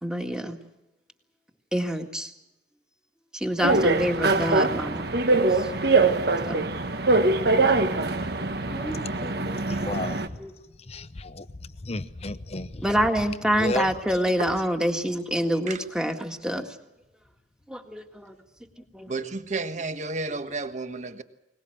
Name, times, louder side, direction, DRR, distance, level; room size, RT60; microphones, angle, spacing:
voice 1, 0.0-0.6 1.7-2.3 3.3-5.1 5.5-5.7 6.5-6.7 8.7-10.0 10.4-10.5 12.8-16.8 17.7-18.4 18.9-19.1, equal, 5° right, 1.9 m, -27 dB
sound 1, 3.6-10.3, right 3 dB, 65° right, 1.4 m, -23 dB
voice 2, 9.6-10.2 10.9-12.9 13.6-13.9 20.3-20.4, left 2 dB, 35° left, 0.9 m, -33 dB
voice 3, 19.1-21.2, right 3 dB, 45° right, 1.4 m, -32 dB
22.0 x 20.0 x 7.7 m
head